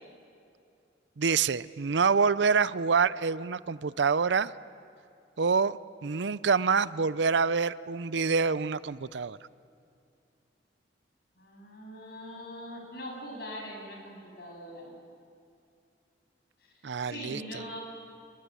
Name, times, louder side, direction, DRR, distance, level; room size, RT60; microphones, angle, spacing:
voice 1, 1.2-4.5 5.4-5.8 6.0-9.4 16.8-17.4, right 5 dB, 75° right, 17 dB, 0.6 m, -26 dB
voice 2, 11.4-15.0 16.6-16.7 17.0-17.8, equal, 60° left, 0 dB, 7.9 m, -42 dB
28.0 x 21.5 x 9.0 m, 2.5 s
head